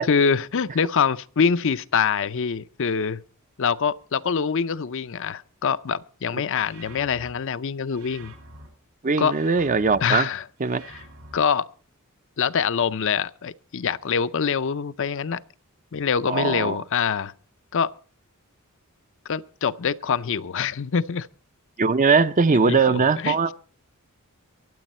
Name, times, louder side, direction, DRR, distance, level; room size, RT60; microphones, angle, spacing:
voice 1, 0.1-3.2 3.6-8.3 9.2-9.3 10.0-10.5 10.9-11.0 11.3-11.7 12.4-15.4 15.9-17.3 17.7-17.9 19.3-21.3 22.7-23.5, left 6 dB, 60° left, 0.5 m, -24 dB
sound 1, 6.5-7.3 7.9-8.7 9.2-10.0 10.6-11.4, right 2 dB, 75° right, 5.8 m, -46 dB
voice 2, 9.0-10.3 10.6-10.8 16.3-16.7 21.8-23.5, right 4 dB, 35° right, 0.6 m, -20 dB
23.5 x 8.2 x 4.3 m
head